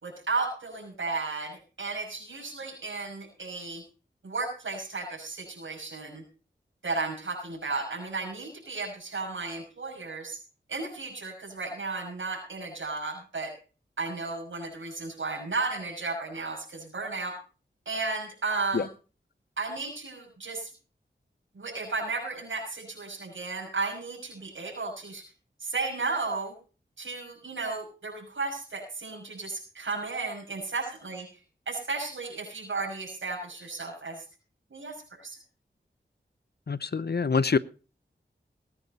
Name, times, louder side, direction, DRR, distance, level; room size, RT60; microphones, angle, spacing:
voice 1, 0.0-3.8 4.2-6.2 6.8-10.4 10.7-13.5 14.0-17.4 17.9-18.9 19.6-20.7 21.5-25.2 25.6-26.5 27.0-31.4 31.7-34.2 34.7-35.4, right 3 dB, 85° right, -2 dB, 6.0 m, -34 dB
voice 2, 36.7-37.6, left 5 dB, 55° left, 18 dB, 0.8 m, -25 dB
19.5 x 9.9 x 4.2 m, 0.36 s
cardioid pair, 45°, 19 cm